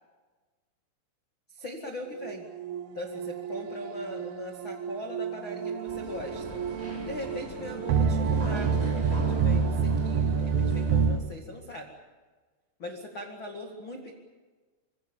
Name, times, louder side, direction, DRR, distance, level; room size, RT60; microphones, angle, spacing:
voice 1, 1.5-2.5 2.9-6.6 7.0-11.9 12.8-14.1, left 1 dB, 80° left, 3 dB, 1.1 m, -40 dB
sound 1, 2.2-11.2, right 6 dB, 75° right, 2.3 m, -28 dB
sound 2, 5.9-11.1, left 1 dB, 5° left, 6.5 m, -41 dB
26.0 x 24.0 x 7.2 m, 1.4 s
omnidirectional pair, 5.9 m